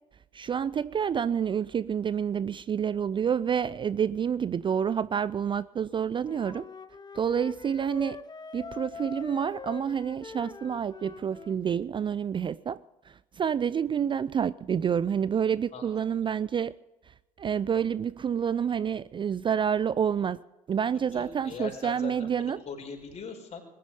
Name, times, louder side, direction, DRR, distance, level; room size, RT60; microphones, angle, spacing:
voice 1, 0.3-6.7 7.1-8.2 8.5-12.8 13.0-16.7 17.1-20.4 20.7-22.6, right 8 dB, 30° right, 0.4 m, -28 dB
Wind instrument woodwind instrument, 6.2-11.6, left 5 dB, 25° left, 1.1 m, -43 dB
voice 2, 21.1-23.6, left 5 dB, 40° left, 4.9 m, -40 dB
21.0 x 11.5 x 5.5 m
figure-of-eight pair, 55°, 18 cm